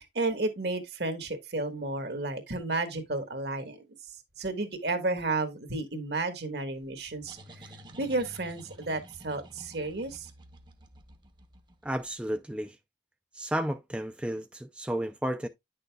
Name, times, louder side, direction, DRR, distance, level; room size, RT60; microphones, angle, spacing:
voice 1, 0.0-3.8 4.4-7.7 8.0-10.3, right 2 dB, 65° right, 1.4 m, -32 dB
sound 1, 6.8-12.3, right 1 dB, 25° right, 0.8 m, -51 dB
voice 2, 11.8-12.8 13.3-15.5, right 1 dB, 5° right, 0.4 m, -32 dB
9.8 x 6.4 x 2.3 m
head